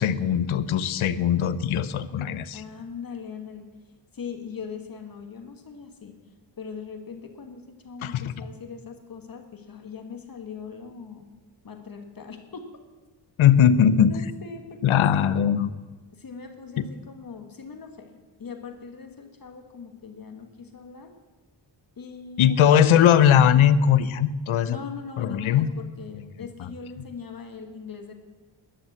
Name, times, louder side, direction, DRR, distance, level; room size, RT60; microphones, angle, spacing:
voice 1, 0.0-2.6 8.0-8.3 13.4-14.1 14.8-15.7 16.8-16.9 22.4-24.8 25.2-25.7 26.6-26.7, left 9 dB, 80° left, 14 dB, 0.9 m, -20 dB
voice 2, 2.5-3.7 4.1-6.2 6.6-11.3 11.6-12.7 13.8-15.4 16.1-21.1 22.0-22.8 24.7-28.1, left 5 dB, 45° left, 5 dB, 1.5 m, -40 dB
12.0 x 10.5 x 8.0 m, 1.3 s
wide cardioid pair, 120°, 48 cm